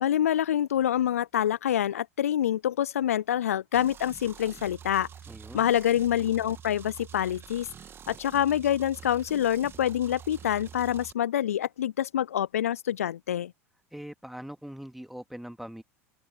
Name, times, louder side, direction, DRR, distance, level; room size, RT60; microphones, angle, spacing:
voice 1, 0.0-5.1 5.5-7.7 8.1-13.5, left 10 dB, 80° left, 0.4 m, -26 dB
sound 1, 3.7-11.1, right 8 dB, 30° right, 2.0 m, -47 dB
voice 2, 5.3-5.7 13.9-15.8, equal, ahead, 2.5 m, -42 dB
open air
hypercardioid pair, 80°, 8 cm